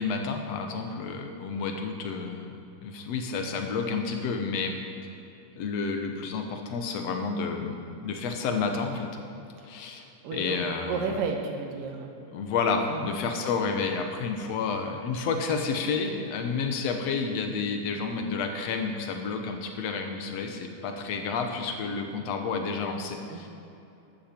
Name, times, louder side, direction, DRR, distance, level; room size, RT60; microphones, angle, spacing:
voice 1, 0.0-4.7 5.6-9.1 9.7-10.0 10.3-11.1 12.3-23.5, left 5 dB, 60° left, 4 dB, 2.1 m, -30 dB
voice 2, 10.2-10.6 10.9-12.1 12.9-13.1 23.3-23.5, right 5 dB, 90° right, 2 dB, 3.0 m, -32 dB
14.5 x 12.5 x 4.6 m, 2.8 s
omnidirectional pair, 3.7 m